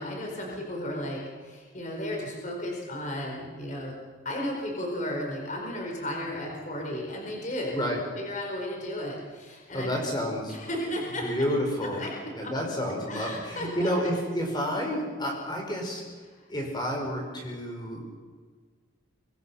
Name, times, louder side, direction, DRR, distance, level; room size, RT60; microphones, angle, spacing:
voice 1, 0.0-3.9 4.2-7.9 8.2-9.9 10.5-11.2 12.0-12.5 13.1-13.9, left 1 dB, 40° left, 0 dB, 4.5 m, -34 dB
voice 2, 9.7-10.5 11.2-12.0 12.4-16.0 16.5-18.0, equal, 20° left, 1 dB, 5.3 m, -30 dB
24.0 x 22.5 x 5.8 m, 1.5 s
head